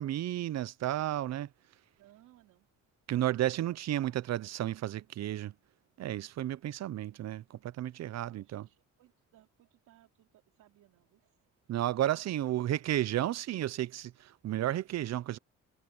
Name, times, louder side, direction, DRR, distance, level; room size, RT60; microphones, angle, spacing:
voice 1, 0.0-1.5 3.1-5.5 6.0-8.6 11.7-15.4, right 13 dB, 60° right, 0.6 m, -32 dB
voice 2, 2.0-2.7 3.1-3.8 4.1-4.2 8.0-11.5 12.1-12.6, right 14 dB, 85° right, 3.0 m, -63 dB
cardioid pair, 90°, 30 cm